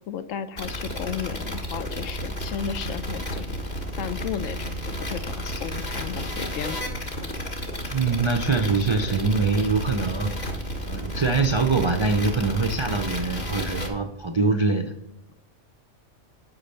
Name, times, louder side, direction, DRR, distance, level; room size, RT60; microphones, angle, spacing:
voice 1, 0.1-3.5 4.0-6.8, left 9 dB, 85° left, 12 dB, 1.0 m, -34 dB
sound 1, 0.6-13.9, equal, 35° left, 1.4 m, -32 dB
voice 2, 7.9-10.5 10.8-15.0, right 4 dB, 50° right, 4 dB, 0.3 m, -24 dB
8.6 x 5.3 x 6.7 m, 0.84 s
omnidirectional pair, 1.3 m